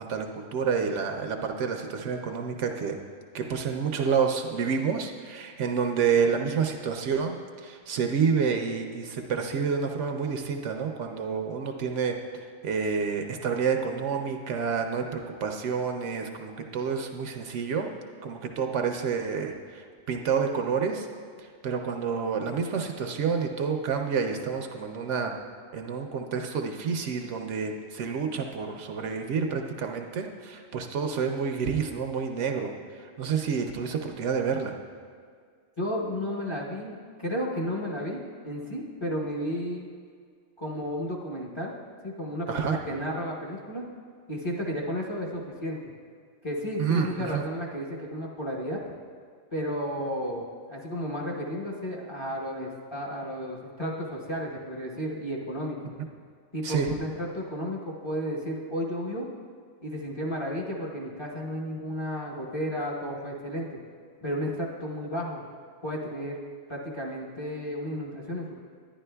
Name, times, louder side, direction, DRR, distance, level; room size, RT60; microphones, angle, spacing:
voice 1, 0.0-3.0 3.3-12.2 12.6-17.9 18.2-21.1 21.6-25.3 25.7-34.7 42.5-42.8 46.8-47.4 56.6-56.9, right 6 dB, 70° right, 4 dB, 0.9 m, -29 dB
voice 2, 35.8-38.2 38.4-39.9 40.6-41.7 42.0-43.8 44.3-45.8 46.4-48.8 49.5-55.9 56.5-59.3 59.8-63.8 64.2-65.5 65.8-66.4 66.7-68.6, equal, 25° left, -4 dB, 0.9 m, -33 dB
11.0 x 10.0 x 2.2 m, 2.1 s
omnidirectional pair, 1.3 m